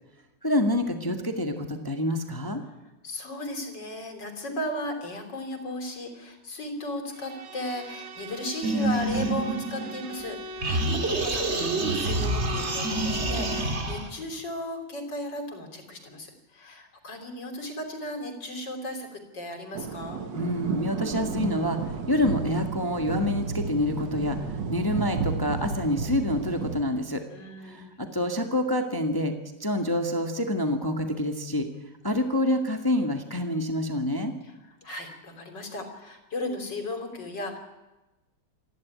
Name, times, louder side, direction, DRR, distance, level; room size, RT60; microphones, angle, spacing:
voice 1, 0.4-2.6 20.3-27.2 27.6-29.3 29.6-31.7 32.0-34.3, left 1 dB, 10° left, 5 dB, 1.5 m, -27 dB
voice 2, 3.0-20.2 27.3-27.9 34.4-37.6, left 1 dB, 60° left, 5 dB, 3.9 m, -36 dB
Bowed string instrument, 7.1-13.8, right 1 dB, 90° right, 2.2 m, -40 dB
sound 1, 8.6-10.3 10.6-14.1, right 2 dB, 35° right, 2.3 m, -27 dB
sound 2, 19.7-26.8, right 5 dB, 65° right, 2.2 m, -32 dB
27.5 x 11.5 x 9.5 m, 1.1 s
omnidirectional pair, 2.2 m